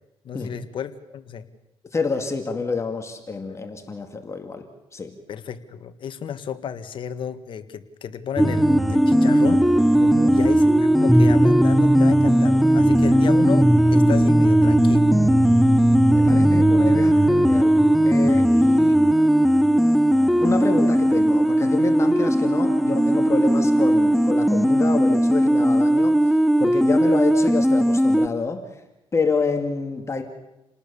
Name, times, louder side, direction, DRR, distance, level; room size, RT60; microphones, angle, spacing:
voice 1, 0.2-1.5 5.3-9.7 10.3-15.1, left 8 dB, 55° left, 9 dB, 1.8 m, -32 dB
voice 2, 1.9-4.7 4.9-5.1 10.0-10.4 16.1-19.0 20.4-28.8 29.1-30.2, left 4 dB, 30° left, 5 dB, 2.3 m, -28 dB
sound 1, 8.4-28.3, right 1 dB, ahead, 0.8 m, -17 dB
29.5 x 19.5 x 7.1 m, 0.97 s
cardioid pair, 110°, 10 cm